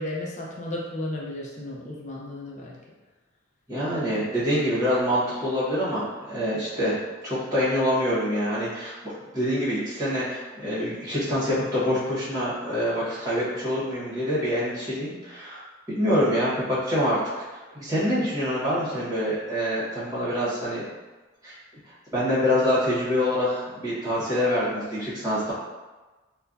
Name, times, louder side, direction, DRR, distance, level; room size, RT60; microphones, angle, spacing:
voice 1, 0.0-2.8, left 1 dB, 35° left, -3 dB, 0.6 m, -34 dB
voice 2, 3.7-7.0 7.2-15.6 15.9-17.2 17.7-20.9 21.4-21.6 22.1-25.5, equal, 20° right, -10 dB, 1.3 m, -25 dB
4.2 x 2.2 x 2.6 m, 1.2 s
head